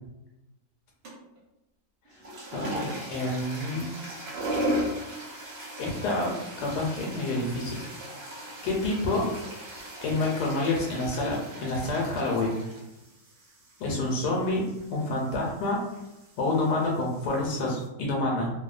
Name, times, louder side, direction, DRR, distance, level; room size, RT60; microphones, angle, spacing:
sound 1, 1.0-1.4 2.0-17.9, equal, 60° right, 0.6 m, -38 dB
voice 1, 2.5-3.9 5.8-7.8 8.6-9.2 10.0-12.6 13.8-14.6 14.9-15.8 16.4-18.5, left 2 dB, 90° left, -2 dB, 1.2 m, -28 dB
2.9 x 2.1 x 2.4 m, 0.95 s
omnidirectional pair, 1.8 m